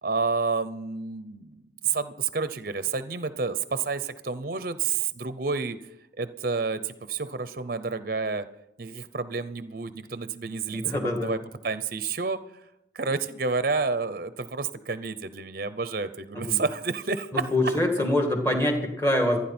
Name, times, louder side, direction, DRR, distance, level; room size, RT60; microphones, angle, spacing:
voice 1, 0.0-5.8 6.2-8.5 8.8-12.4 12.9-17.7, right 4 dB, 50° right, 12 dB, 0.7 m, -30 dB
voice 2, 10.7-11.3 16.3-16.6 17.3-19.4, left 1 dB, 15° left, 3 dB, 2.2 m, -25 dB
27.0 x 9.8 x 4.4 m, 0.85 s
head